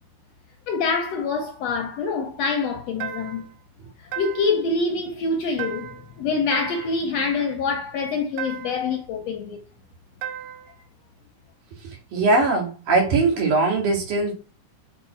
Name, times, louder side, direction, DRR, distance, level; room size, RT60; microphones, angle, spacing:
voice 1, 0.7-3.5 4.1-9.6, left 4 dB, 70° left, 1.6 m, -25 dB
sound 1, 3.0-3.6 4.1-4.7 5.6-6.1 6.5-7.1 8.4-8.9 10.2-10.8, right 9 dB, 90° right, 2.4 m, -35 dB
voice 2, 11.8-14.3, right 3 dB, 75° right, 3.7 m, -21 dB
7.1 x 4.8 x 4.5 m
omnidirectional pair, 3.7 m